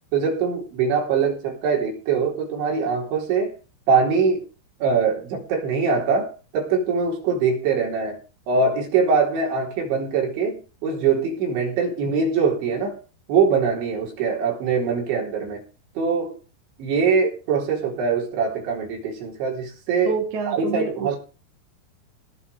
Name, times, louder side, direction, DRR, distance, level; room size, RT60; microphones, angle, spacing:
voice 1, 0.1-3.6 3.9-4.4 4.8-8.2 8.5-13.0 13.3-15.6 16.0-16.3 16.8-20.2 20.5-21.2, right 5 dB, 60° right, -1 dB, 6.3 m, -22 dB
voice 2, 20.1-21.1, right 5 dB, 45° right, 3 dB, 2.9 m, -27 dB
18.0 x 6.1 x 6.9 m, 0.34 s
omnidirectional pair, 5.9 m